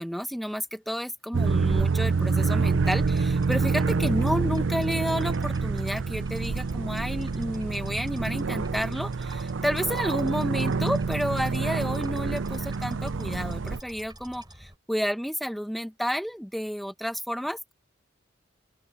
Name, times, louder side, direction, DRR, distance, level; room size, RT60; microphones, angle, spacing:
voice 1, 0.0-17.7, equal, ahead, 1.4 m, -31 dB
sound 1, 1.3-13.8, right 4 dB, 70° right, 0.5 m, -27 dB
sound 2, 2.7-14.8, right 1 dB, 20° right, 3.7 m, -49 dB
open air
head